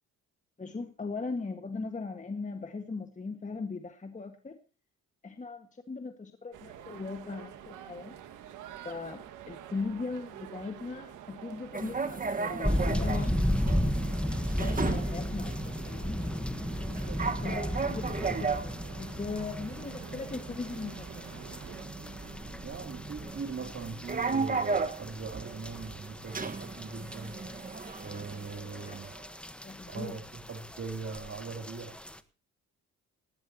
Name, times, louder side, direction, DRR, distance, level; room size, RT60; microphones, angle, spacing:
voice 1, 0.6-4.6 5.2-8.2 8.8-13.3 14.5-16.2 17.4-21.3 28.9-29.0 29.6-30.2, left 4 dB, 25° left, 6 dB, 1.8 m, -39 dB
sound 1, 6.5-21.9, right 10 dB, 85° right, 2.0 m, -48 dB
sound 2, 11.7-29.3, right 4 dB, 25° right, 1.7 m, -36 dB
sound 3, 12.6-32.2, left 1 dB, 5° left, 1.3 m, -35 dB
voice 2, 16.9-17.3 22.6-27.4 28.0-29.1 29.9-31.9, right 4 dB, 45° right, 4 dB, 3.2 m, -41 dB
18.5 x 16.5 x 3.0 m, 0.34 s
cardioid pair, 90°, 30 cm